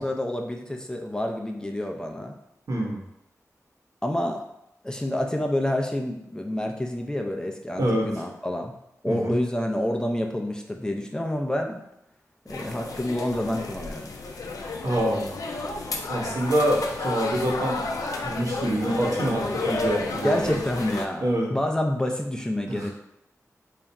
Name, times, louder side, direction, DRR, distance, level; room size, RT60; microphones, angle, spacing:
voice 1, 0.0-2.3 4.0-4.4 4.8-8.7 9.0-11.8 12.5-14.1 20.2-22.9, left 1 dB, 10° left, 2 dB, 0.5 m, -28 dB
voice 2, 2.7-3.0 7.8-8.2 9.1-9.4 14.8-15.3 16.1-17.8 18.2-20.6 21.2-21.5 22.7-22.9, right 1 dB, 75° right, -2 dB, 1.0 m, -25 dB
sound 1, 12.5-21.1, left 3 dB, 85° left, 0.4 m, -32 dB
3.3 x 2.4 x 4.0 m, 0.81 s
wide cardioid pair, 70°, 6 cm